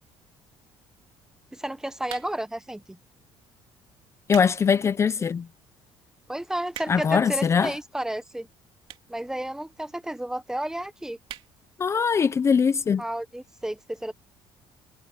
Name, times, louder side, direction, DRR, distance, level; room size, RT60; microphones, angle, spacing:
voice 1, 1.5-3.0 6.3-8.5 9.1-11.2 13.0-14.1, right 1 dB, 5° right, 0.8 m, -32 dB
sound 1, 2.0-2.6 3.3-3.5 4.0-4.6 5.0-5.1 5.7-5.8 6.0-6.1 6.3-7.2 8.0-8.1 8.8-9.2 9.5-9.6 9.8-9.9 10.1-10.2 10.5-10.7 11.2-11.5 11.9-12.0 12.2-12.3, right 11 dB, 60° right, 2.6 m, -41 dB
voice 2, 4.3-5.5 6.9-7.7 11.8-13.0, left 6 dB, 25° left, 0.5 m, -22 dB
cardioid pair, 145°, 11 cm